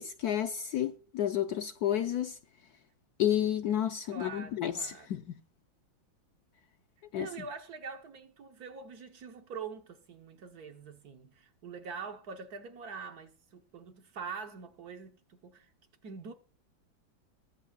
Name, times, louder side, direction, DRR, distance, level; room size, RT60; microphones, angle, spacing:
voice 1, 0.0-2.4 3.2-5.4 7.1-7.3, left 10 dB, 70° left, 1.0 m, -31 dB
voice 2, 4.1-5.1 7.1-15.7 16.0-16.3, right 5 dB, 55° right, 1.5 m, -44 dB
22.0 x 8.3 x 2.4 m
omnidirectional pair, 2.1 m